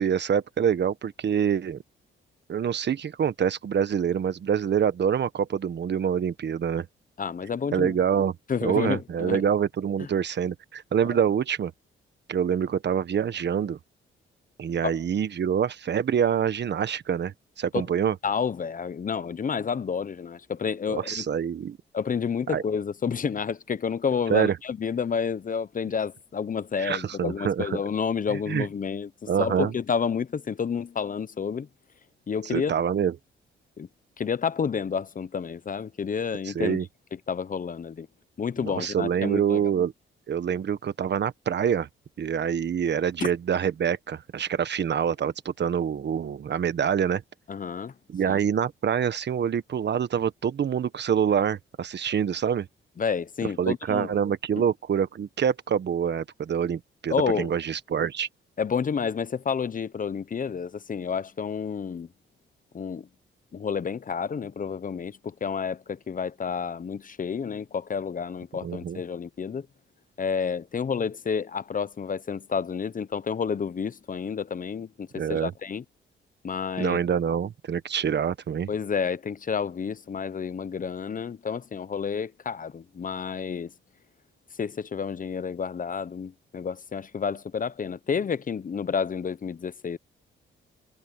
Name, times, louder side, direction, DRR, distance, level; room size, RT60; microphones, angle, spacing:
voice 1, 0.0-1.8 2.5-6.9 7.7-8.3 8.6-11.7 12.3-13.8 14.6-18.1 20.9-21.8 22.5-22.6 24.3-24.6 26.8-27.8 28.3-28.7 29.3-29.7 32.4-33.1 36.4-36.9 38.6-39.9 40.3-41.9 42.2-47.2 48.1-52.7 53.6-58.3 68.6-69.0 75.1-75.5 76.8-78.7, right 8 dB, 55° right, 1.3 m, -26 dB
voice 2, 7.2-8.0 8.5-9.4 10.0-10.1 14.8-15.0 17.7-17.8 18.2-21.3 21.9-31.7 32.3-32.7 33.8-33.9 34.2-36.8 37.3-38.1 38.4-39.7 47.5-47.9 48.3-48.4 53.0-54.2 57.1-57.5 58.6-62.1 62.7-63.1 63.5-69.7 70.2-75.8 76.4-77.0 78.7-83.7 84.6-90.0, left 6 dB, 40° left, 0.9 m, -30 dB
cardioid pair, 75°, 21 cm